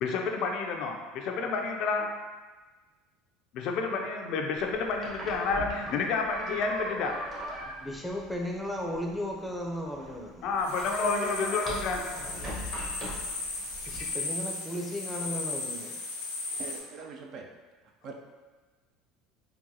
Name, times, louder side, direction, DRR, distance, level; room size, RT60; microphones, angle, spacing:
voice 1, 0.0-2.1 3.5-7.3 10.4-12.1 14.0-14.1, left 4 dB, 60° left, 2 dB, 0.4 m, -30 dB
sound 1, 4.6-14.1, equal, 35° right, 1.2 m, -40 dB
voice 2, 7.6-10.5 13.8-15.9, equal, ahead, -1 dB, 0.6 m, -35 dB
sound 2, 10.6-16.8, left 3 dB, 85° left, 0.7 m, -36 dB
voice 3, 16.6-17.5 18.0-18.1, right 4 dB, 55° right, 1 dB, 0.5 m, -42 dB
3.8 x 2.2 x 2.7 m, 1.3 s
hypercardioid pair, 80°, 0 cm